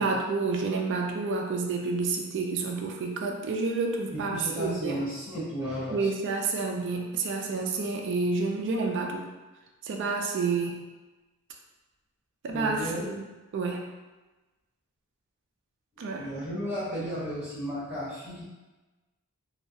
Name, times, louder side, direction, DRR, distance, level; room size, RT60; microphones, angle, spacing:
voice 1, 0.0-5.0 5.9-9.3 9.8-10.8 12.4-13.2 13.5-13.9 16.0-16.3, right 4 dB, 55° right, 1 dB, 0.3 m, -29 dB
voice 2, 4.1-6.1 12.5-13.1 16.0-18.4, equal, 5° right, -15 dB, 1.0 m, -34 dB
2.2 x 2.1 x 2.7 m, 1.1 s
head